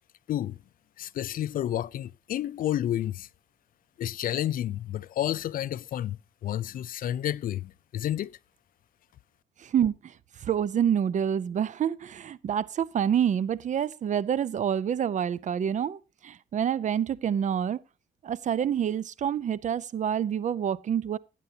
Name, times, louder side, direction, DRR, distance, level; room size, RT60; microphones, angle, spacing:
voice 1, 1.0-3.3 4.0-8.3, left 12 dB, 65° left, 0.4 m, -30 dB
voice 2, 9.6-10.1 10.4-17.8 18.2-21.2, right 9 dB, 55° right, 0.6 m, -27 dB
16.5 x 9.1 x 2.8 m
cardioid pair, 110°, 15 cm